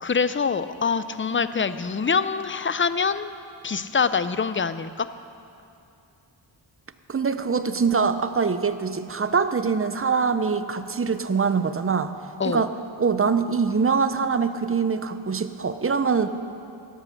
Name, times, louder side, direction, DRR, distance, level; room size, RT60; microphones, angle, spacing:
voice 1, 0.0-3.3 3.6-5.1 12.4-12.6, left 5 dB, 25° left, 13 dB, 0.5 m, -25 dB
voice 2, 7.1-12.1 12.4-12.7 13.0-16.3, right 5 dB, 30° right, 11 dB, 0.6 m, -23 dB
13.0 x 11.0 x 6.4 m, 2.6 s
wide cardioid pair, 70°, 48 cm